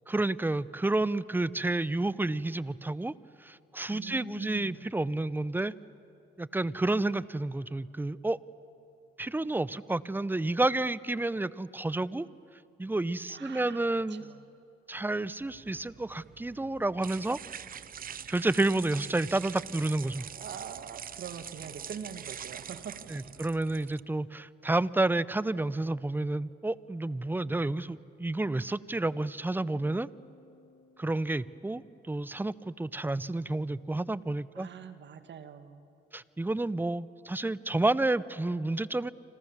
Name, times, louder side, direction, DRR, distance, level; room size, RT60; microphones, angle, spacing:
voice 1, 0.1-3.1 3.4-5.7 6.4-8.4 9.2-12.3 12.8-14.2 14.9-17.4 18.3-20.3 23.1-30.1 31.0-31.8 32.1-34.7 36.1-39.1, right 2 dB, 10° right, 18 dB, 0.6 m, -30 dB
voice 2, 3.9-4.9 13.3-13.8 14.1-14.5 20.3-23.3 34.5-35.9, right 7 dB, 65° right, 10 dB, 1.8 m, -44 dB
sound 1, 15.4-24.0, right 8 dB, 45° right, 0.8 m, -44 dB
sound 2, 29.7-32.2, left 3 dB, 20° left, 2.8 m, -60 dB
29.5 x 26.0 x 7.4 m, 2.8 s
cardioid pair, 90°, 20 cm